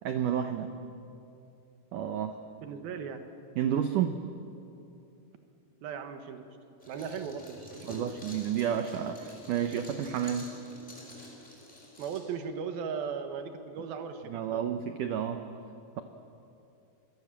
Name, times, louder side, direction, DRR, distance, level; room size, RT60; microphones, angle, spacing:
voice 1, 0.0-0.7 1.9-2.4 3.6-4.2 7.8-10.5 14.3-15.4, right 9 dB, 85° right, 7 dB, 1.8 m, -30 dB
voice 2, 2.6-3.2 5.8-6.5 6.9-8.1 12.0-14.6, right 6 dB, 65° right, 7 dB, 3.1 m, -37 dB
sound 1, 6.8-12.2, left 1 dB, 10° left, 5.2 m, -48 dB
27.0 x 22.5 x 7.5 m, 2.7 s
omnidirectional pair, 5.0 m